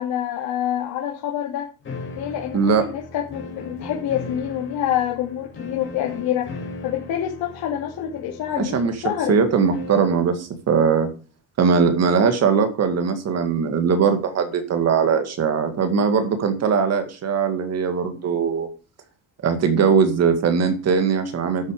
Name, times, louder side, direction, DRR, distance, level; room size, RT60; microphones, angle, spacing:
voice 1, 0.0-1.7 2.1-6.5 6.8-9.3, left 10 dB, 70° left, -1 dB, 2.8 m, -26 dB
sound 1, 1.8-10.2, left 3 dB, 30° left, 4.7 m, -38 dB
voice 2, 8.6-8.9 9.3-11.1 11.6-18.7 19.4-21.7, right 6 dB, 40° right, 8 dB, 2.1 m, -20 dB
11.5 x 8.3 x 5.0 m, 0.35 s
cardioid pair, 165°, 38 cm